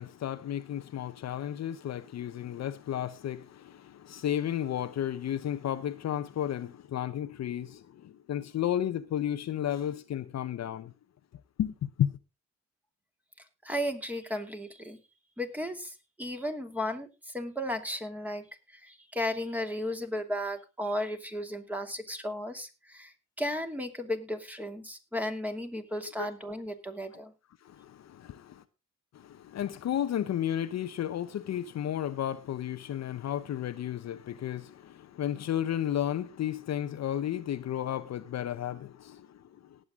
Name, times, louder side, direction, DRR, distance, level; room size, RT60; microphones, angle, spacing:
voice 1, 0.0-10.9 11.6-12.1 26.2-26.3 27.6-28.6 29.1-39.8, left 10 dB, 60° left, 0.9 m, -33 dB
voice 2, 13.6-15.0 15.4-27.3, left 1 dB, 5° right, 2.6 m, -35 dB
19.0 x 8.0 x 3.7 m
cardioid pair, 90°, 30 cm